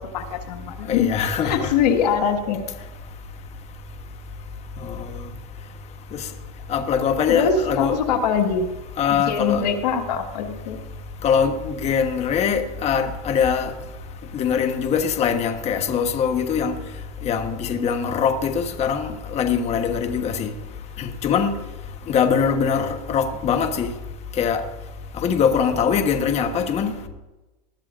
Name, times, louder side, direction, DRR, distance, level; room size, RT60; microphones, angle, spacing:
voice 1, 0.0-1.1 1.4-2.7 7.3-8.7 9.1-10.8, left 7 dB, 80° left, 5 dB, 1.7 m, -23 dB
voice 2, 0.9-1.7 4.9-5.1 6.1-6.3 6.7-8.0 9.0-9.6 11.2-13.7 14.3-16.7 17.2-20.5 21.0-21.5 22.1-23.9 24.4-24.6 25.2-27.1, left 7 dB, 30° left, 6 dB, 1.2 m, -22 dB
20.5 x 13.0 x 2.5 m, 1.1 s
supercardioid pair, 125°, 21 cm